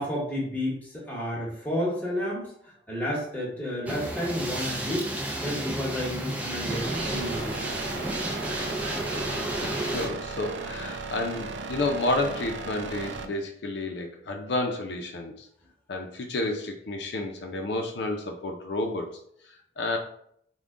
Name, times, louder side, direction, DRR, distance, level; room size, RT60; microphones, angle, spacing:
voice 1, 0.0-7.8, equal, 10° left, -5 dB, 1.1 m, -31 dB
sound 1, 3.9-10.1, right 1 dB, 10° right, 0.4 m, -32 dB
sound 2, 6.7-13.2, right 4 dB, 90° right, 0.4 m, -36 dB
voice 2, 9.6-15.5 15.9-19.1 19.8-20.0, left 2 dB, 70° left, 2 dB, 0.5 m, -30 dB
3.6 x 2.2 x 3.6 m, 0.67 s
head